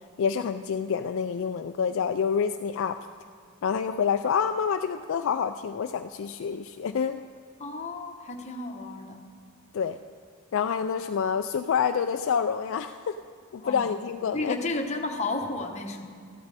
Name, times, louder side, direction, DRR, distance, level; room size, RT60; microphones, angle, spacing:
voice 1, 0.2-3.0 3.6-7.2 9.7-10.0 10.5-13.2 13.5-14.6, left 6 dB, 60° left, 7 dB, 0.3 m, -27 dB
voice 2, 7.6-9.3 13.6-14.0 14.3-16.1, left 2 dB, 30° left, 3 dB, 1.0 m, -33 dB
14.5 x 12.0 x 4.1 m, 2.1 s
head